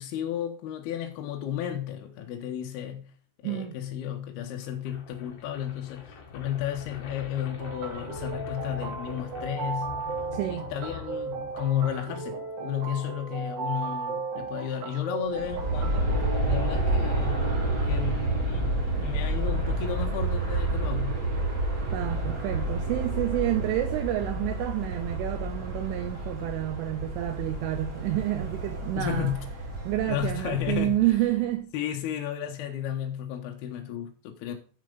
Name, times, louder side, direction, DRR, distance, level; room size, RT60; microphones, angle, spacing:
voice 1, 0.0-3.0 3.4-9.9 10.5-16.1 16.5-17.5 17.9-21.2 28.9-29.4 30.1-31.0 31.7-34.5, left 10 dB, 75° left, 2.3 m, -33 dB
voice 2, 3.4-3.8 10.3-10.7 21.9-29.3 29.9-31.7, right 14 dB, 80° right, 3.0 m, -29 dB
sound 1, 4.5-12.5, left 5 dB, 60° left, 2.4 m, -44 dB
sound 2, 7.6-16.4, right 4 dB, 65° right, 3.3 m, -35 dB
Aircraft, 15.3-31.3, right 2 dB, 45° right, 1.3 m, -29 dB
8.2 x 7.2 x 5.2 m
omnidirectional pair, 6.0 m